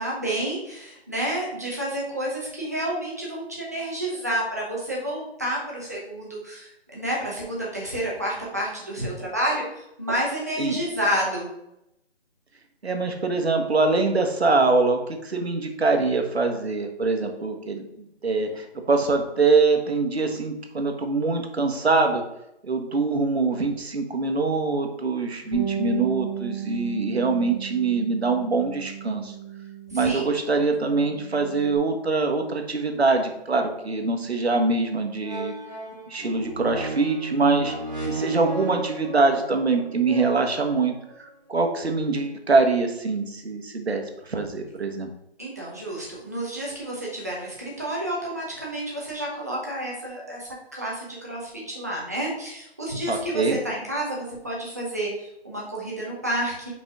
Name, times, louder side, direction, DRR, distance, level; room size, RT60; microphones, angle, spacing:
voice 1, 0.0-11.5 29.9-30.3 45.4-56.7, right 1 dB, 15° right, -4 dB, 0.8 m, -30 dB
voice 2, 12.8-22.2 22.6-29.3 29.9-35.5 36.1-37.7 38.1-40.9 41.5-45.1 53.1-53.6, right 3 dB, 75° right, 4 dB, 1.3 m, -24 dB
Bass guitar, 25.5-30.2 30.5-31.8, right 8 dB, 20° left, 1.0 m, -34 dB
sound 1, 34.8-34.9 35.2-41.1 41.8-41.9, right 3 dB, 45° right, 1.7 m, -34 dB
4.8 x 4.5 x 4.7 m, 0.83 s
figure-of-eight pair, 175°, 32 cm